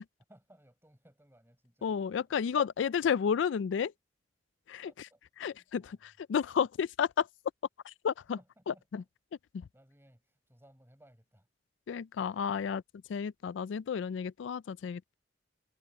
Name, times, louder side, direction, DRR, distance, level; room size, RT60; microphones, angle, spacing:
voice 1, 0.3-2.0 4.8-6.0 8.4-9.1 9.5-11.5, right 1 dB, 15° right, 5.4 m, -62 dB
voice 2, 1.8-3.9 4.7-4.9 5.4-7.3 7.8-8.4 8.7-9.0 9.5-9.7 11.9-12.8 13.1-15.1, left 7 dB, 85° left, 0.3 m, -32 dB
head